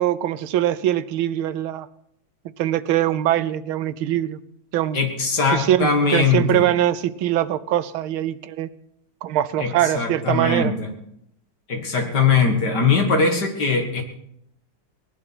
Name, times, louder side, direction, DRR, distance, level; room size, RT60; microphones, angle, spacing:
voice 1, 0.0-1.9 2.6-4.4 4.7-5.1 5.5-8.7 9.2-10.7, right 12 dB, 85° right, 14 dB, 1.6 m, -22 dB
voice 2, 4.9-6.7 9.6-10.9 11.7-14.0, left 4 dB, 55° left, 4 dB, 2.6 m, -21 dB
19.0 x 11.0 x 6.1 m, 0.76 s
omnidirectional pair, 2.2 m